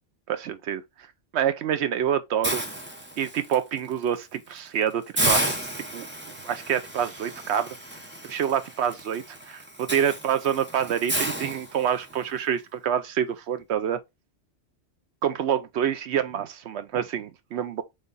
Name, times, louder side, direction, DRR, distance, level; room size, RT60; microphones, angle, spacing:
voice 1, 0.3-1.1 1.3-2.6 3.2-7.8 8.2-14.0 15.2-17.8, right 9 dB, 70° right, 0.8 m, -27 dB
Hiss, 2.4-3.5 4.0-4.2 4.6-4.7 5.2-12.2, right 1 dB, 10° right, 0.6 m, -31 dB
3.3 x 3.3 x 3.9 m
omnidirectional pair, 1.2 m